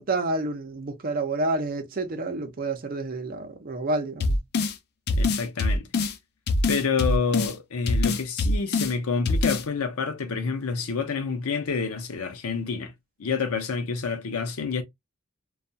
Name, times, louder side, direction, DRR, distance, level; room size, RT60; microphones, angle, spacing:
voice 1, 0.0-4.4, right 2 dB, 45° right, 0.6 m, -29 dB
sound 1, 4.2-4.7 5.1-6.1 6.5-7.5 7.9-8.9 9.3-9.6, left 2 dB, 50° left, 0.3 m, -23 dB
voice 2, 5.2-5.9 6.7-12.9 13.2-14.8, left 5 dB, 85° left, 0.6 m, -28 dB
2.3 x 2.3 x 2.6 m
head